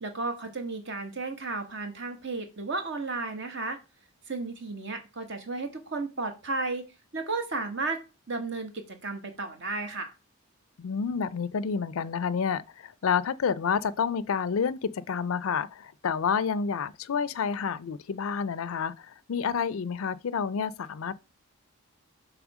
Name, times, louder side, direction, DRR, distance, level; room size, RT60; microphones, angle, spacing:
voice 1, 0.0-3.8 4.3-6.9 7.1-8.0 8.3-10.1, right 3 dB, 55° right, 1.5 m, -33 dB
voice 2, 10.8-21.2, left 6 dB, 75° left, 0.4 m, -29 dB
7.2 x 3.4 x 6.1 m
head